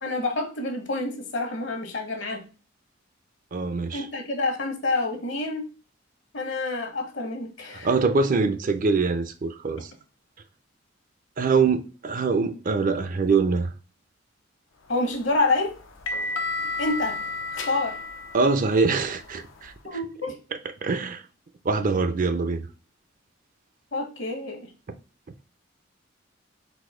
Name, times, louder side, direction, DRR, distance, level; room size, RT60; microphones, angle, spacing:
voice 1, 0.0-2.4 3.9-5.7 6.3-7.9 14.9-15.7 16.8-17.2 17.7-18.0 19.8-20.4 23.9-24.7, left 2 dB, 65° left, 1.2 m, -27 dB
voice 2, 3.5-4.0 7.8-9.9 11.4-13.7 18.3-19.7 20.8-21.2 21.6-22.7, right 4 dB, 45° right, 0.4 m, -23 dB
sound 1, 15.0-19.8, left 3 dB, 85° left, 0.6 m, -33 dB
4.1 x 2.7 x 4.8 m
head